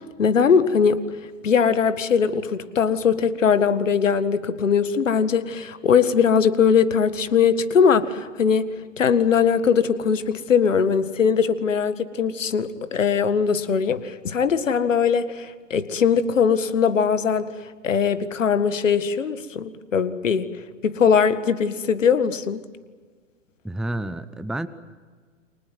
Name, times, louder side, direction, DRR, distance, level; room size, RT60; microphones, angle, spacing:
voice 1, 0.2-1.0 1.4-8.7 9.0-17.5 17.8-22.6, left 6 dB, 70° left, 13 dB, 1.9 m, -20 dB
voice 2, 23.6-24.7, right 1 dB, ahead, 14 dB, 0.9 m, -29 dB
29.5 x 25.0 x 7.8 m, 1.5 s
figure-of-eight pair, 100°, 39 cm